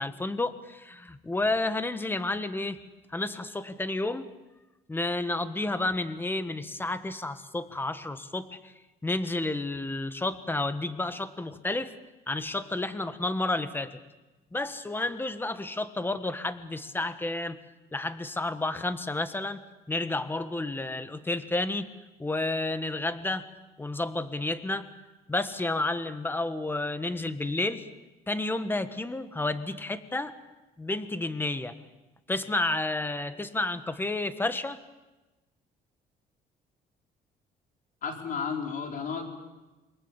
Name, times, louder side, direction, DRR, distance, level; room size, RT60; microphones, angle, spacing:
voice 1, 0.0-2.8 3.1-4.3 4.9-8.7 9.0-11.9 12.3-14.0 14.5-17.6 17.9-19.6 19.9-21.9 22.2-23.5 23.8-24.9 25.3-27.8 28.3-30.3 30.8-31.7 32.3-34.8, left 2 dB, 10° left, 12 dB, 1.5 m, -31 dB
voice 2, 38.0-39.2, left 6 dB, 55° left, 3 dB, 4.8 m, -32 dB
28.0 x 21.5 x 7.3 m, 1.1 s
cardioid pair, 110°, 17 cm